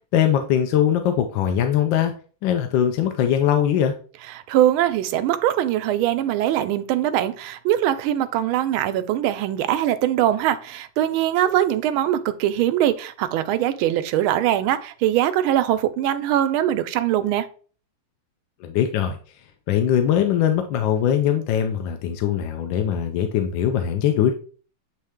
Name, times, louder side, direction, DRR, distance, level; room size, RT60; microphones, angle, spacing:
voice 1, 0.1-2.1 2.4-4.0 18.6-19.2 19.7-24.3, left 9 dB, 75° left, 1.2 m, -21 dB
voice 2, 4.3-17.5, right 12 dB, 85° right, 1.4 m, -22 dB
8.3 x 3.2 x 3.6 m
omnidirectional pair, 2.3 m